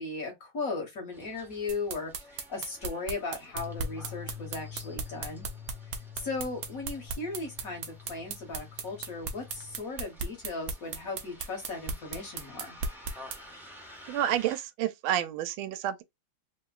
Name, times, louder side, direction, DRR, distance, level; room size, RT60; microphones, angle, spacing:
voice 1, 0.0-5.5 5.8-12.8, left 3 dB, 50° left, 1.3 m, -37 dB
Bus, 1.1-14.5, left 1 dB, 5° right, 0.4 m, -53 dB
sound 1, 1.7-13.4, right 4 dB, 65° right, 0.9 m, -36 dB
sound 2, 3.5-9.8, left 9 dB, 75° left, 0.4 m, -46 dB
voice 2, 14.1-16.0, right 11 dB, 85° right, 1.4 m, -29 dB
3.3 x 2.8 x 2.3 m
omnidirectional pair, 2.2 m